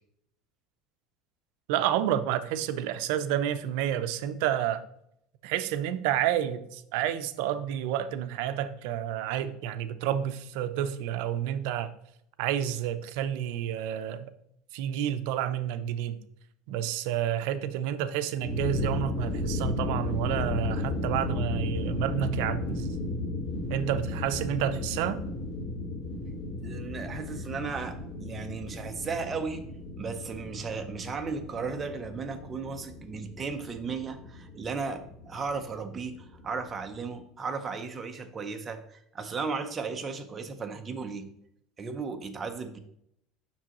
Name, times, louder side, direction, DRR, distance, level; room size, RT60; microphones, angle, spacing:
voice 1, 1.7-4.8 5.4-11.9 12.4-14.3 14.7-16.2 16.7-22.9 23.7-25.2, right 11 dB, 65° right, 0.5 m, -30 dB
sound 1, 18.3-37.1, left 2 dB, 45° left, 1.5 m, -35 dB
voice 2, 26.6-29.6 30.0-41.3 41.8-42.8, right 4 dB, 20° right, 0.6 m, -35 dB
7.2 x 6.0 x 3.0 m
cardioid pair, 165°, 0 cm